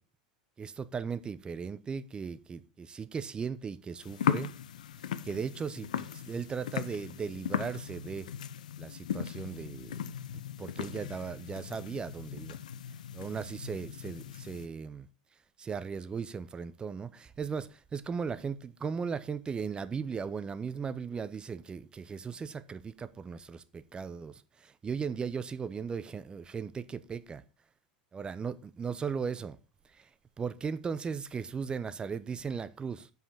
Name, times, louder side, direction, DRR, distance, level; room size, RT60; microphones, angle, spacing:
voice 1, 0.6-4.5 5.2-8.3 8.8-10.0 10.6-12.6 13.1-15.1 15.6-27.4 28.1-29.6 29.9-30.1 30.4-33.1, right 6 dB, 20° right, 0.8 m, -37 dB
sound 1, 4.0-14.7, left 9 dB, 80° left, 0.6 m, -37 dB
7.6 x 5.5 x 6.8 m
hypercardioid pair, 90°, 4 cm